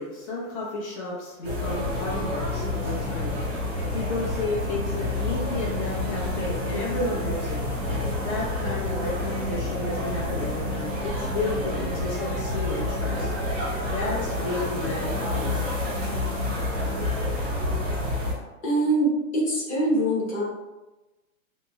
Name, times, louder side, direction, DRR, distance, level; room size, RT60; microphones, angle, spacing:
voice 1, 0.0-7.6 8.2-13.3 13.8-15.7, left 2 dB, 50° left, -5 dB, 0.9 m, -32 dB
sound 1, 1.4-18.3, left 1 dB, ahead, 0.4 m, -28 dB
voice 2, 18.6-20.5, right 1 dB, 25° left, -5 dB, 0.8 m, -24 dB
5.2 x 2.1 x 2.2 m, 1.1 s
hypercardioid pair, 160°, 43 cm